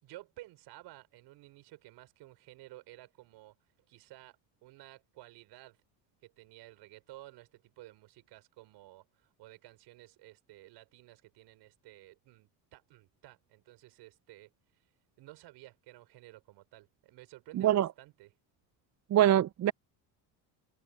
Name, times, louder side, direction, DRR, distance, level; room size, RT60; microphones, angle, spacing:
voice 1, 0.0-3.6 3.9-5.8 6.2-14.5 15.2-18.3, right 17 dB, 75° right, 5.2 m, -54 dB
voice 2, 17.6-17.9 19.1-19.7, right 12 dB, 40° right, 0.6 m, -24 dB
supercardioid pair, 85°, 41 cm